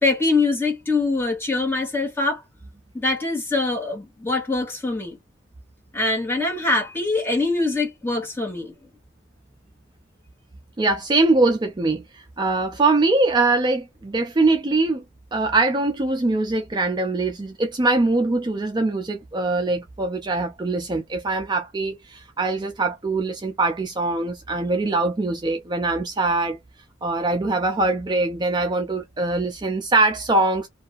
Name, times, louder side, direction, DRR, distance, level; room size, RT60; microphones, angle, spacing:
voice 1, 0.0-2.4 2.9-5.2 5.9-8.7, left 3 dB, 10° left, 1.3 m, -23 dB
voice 2, 10.8-15.0 15.3-26.6 27.0-30.7, right 2 dB, 25° right, 0.4 m, -22 dB
2.7 x 2.3 x 2.4 m
head